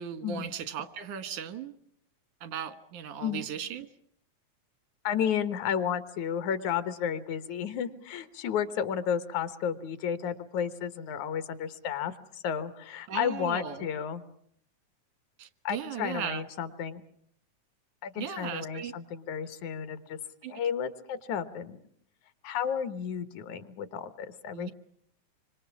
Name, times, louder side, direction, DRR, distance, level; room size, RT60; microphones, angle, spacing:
voice 1, 0.0-1.7 2.4-3.9 13.1-13.9 15.4-16.4 18.2-18.9 20.4-20.5 24.5-24.7, right 8 dB, 90° right, 11 dB, 2.8 m, -37 dB
voice 2, 5.0-14.2 15.6-17.0 18.0-20.2 20.5-21.8 22.4-24.7, left 8 dB, 75° left, 11 dB, 2.5 m, -32 dB
26.5 x 25.0 x 7.2 m, 0.67 s
omnidirectional pair, 3.4 m